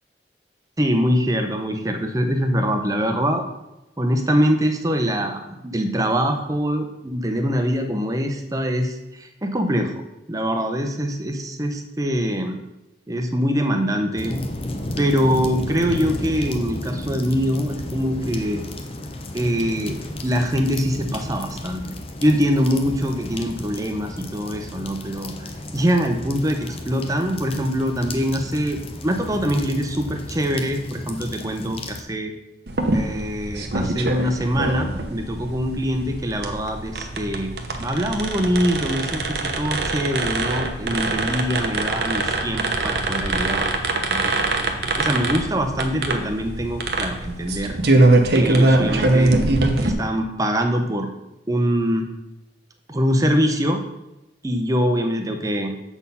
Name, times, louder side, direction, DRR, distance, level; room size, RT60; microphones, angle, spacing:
voice 1, 0.8-3.4 4.0-9.9 10.3-12.6 13.1-14.4 15.0-18.6 19.3-20.0 20.2-21.9 22.2-32.3 32.9-44.3 45.0-47.8 48.3-49.4 49.8-51.1 51.5-52.1 52.9-53.8 54.4-55.7, equal, 20° right, 5 dB, 0.6 m, -23 dB
sound 1, 14.2-32.0, left 1 dB, 30° left, 0.6 m, -33 dB
sound 2, 32.7-49.9, right 2 dB, 65° right, 0.8 m, -23 dB
7.0 x 4.2 x 5.4 m, 0.94 s
head